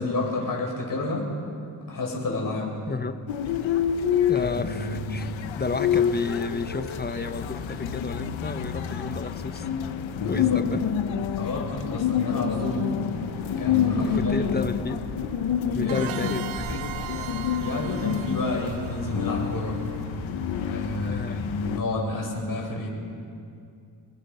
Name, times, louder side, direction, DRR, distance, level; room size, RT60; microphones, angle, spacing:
voice 1, 0.0-1.3 1.9-2.8 4.3-5.1 10.2-10.6 11.4-12.9 13.6-14.7 15.8-16.0 17.6-19.8 20.7-22.9, left 2 dB, 45° left, -1 dB, 7.5 m, -30 dB
voice 2, 2.9-3.2 4.3-9.7 10.3-10.9 14.0-15.1 15.7-16.7 21.0-21.4, left 4 dB, 20° left, 9 dB, 1.3 m, -32 dB
sound 1, 3.3-21.8, left 8 dB, 85° left, 1.4 m, -28 dB
sound 2, 13.1-18.2, right 2 dB, 40° right, 7.3 m, -42 dB
sound 3, 15.9-20.4, right 12 dB, 85° right, 1.1 m, -39 dB
30.0 x 20.0 x 5.8 m, 2.4 s
cardioid pair, 80°, 45 cm